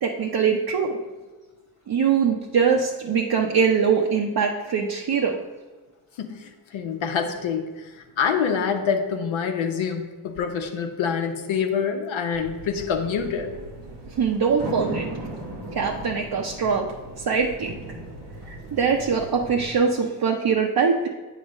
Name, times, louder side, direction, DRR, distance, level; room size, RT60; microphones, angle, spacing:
voice 1, 0.0-1.0 1.9-5.4 14.2-15.1 15.7-16.9 17.2-17.7 18.5-21.1, right 6 dB, 45° right, 0 dB, 0.8 m, -22 dB
voice 2, 6.2-13.6, left 6 dB, 70° left, 5 dB, 1.0 m, -26 dB
sound 1, 12.3-19.8, right 1 dB, 85° right, 1.5 m, -37 dB
7.9 x 3.2 x 5.3 m, 1.3 s
supercardioid pair, 55°, 50 cm